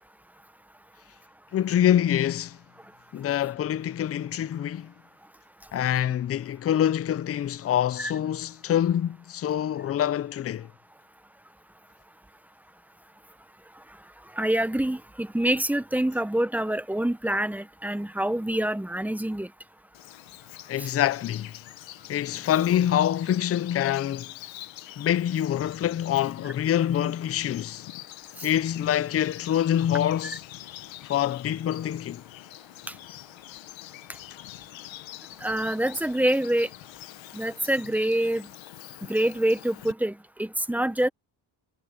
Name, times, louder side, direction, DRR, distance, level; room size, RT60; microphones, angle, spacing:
voice 1, 1.5-2.6 3.1-4.9 5.7-10.7 20.7-21.5 22.1-24.3 25.0-27.9 28.4-30.4 31.0-32.2, left 10 dB, 30° left, 0.4 m, -25 dB
voice 2, 14.3-19.5 20.8-20.9 28.4-28.5 35.4-36.7 37.3-38.5 39.1-41.1, right 1 dB, 5° right, 0.9 m, -26 dB
Bird vocalization bird call bird song, 19.9-39.9, left 14 dB, 75° left, 1.1 m, -45 dB
cardioid pair, 130°, 47 cm